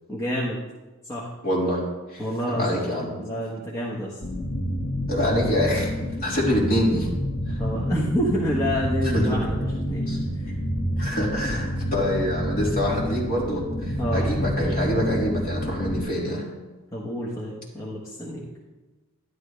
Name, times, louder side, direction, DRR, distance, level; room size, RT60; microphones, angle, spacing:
voice 1, 0.1-0.6 1.0-1.3 2.2-2.8 3.2-4.2 7.6-10.1 10.4-10.5 14.0-14.3 16.9-18.4, equal, 15° left, -6 dB, 1.3 m, -28 dB
voice 2, 1.4-2.2 2.5-3.2 5.1-7.1 7.5-7.6 9.1-9.5 10.1-10.2 11.0-16.5, equal, 40° left, -5 dB, 3.5 m, -25 dB
sound 1, 4.2-16.0, equal, 85° left, 1.9 m, -28 dB
11.5 x 11.5 x 3.4 m, 1.2 s
head